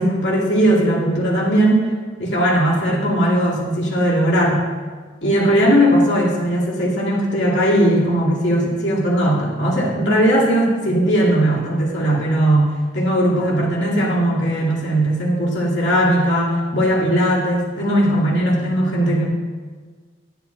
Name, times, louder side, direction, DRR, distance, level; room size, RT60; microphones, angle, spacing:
voice 1, 0.0-1.9 2.2-4.6 5.2-19.3, right 1 dB, 80° left, -5 dB, 2.0 m, -18 dB
10.5 x 10.0 x 2.3 m, 1.5 s
head